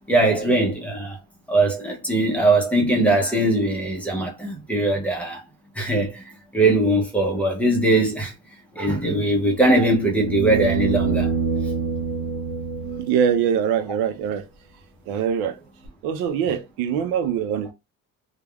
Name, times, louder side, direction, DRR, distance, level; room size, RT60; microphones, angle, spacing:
voice 1, 0.1-1.2 1.5-5.4 5.8-6.2 6.5-8.3 8.8-11.3, right 2 dB, 5° left, 0.6 m, -20 dB
sound 1, 9.3-13.5 15.9-16.0, right 5 dB, 55° right, 0.8 m, -26 dB
voice 2, 13.0-14.5 15.1-15.6 16.0-17.7, right 8 dB, 85° right, 0.5 m, -23 dB
3.3 x 2.2 x 2.2 m
cardioid pair, 150°, 35 cm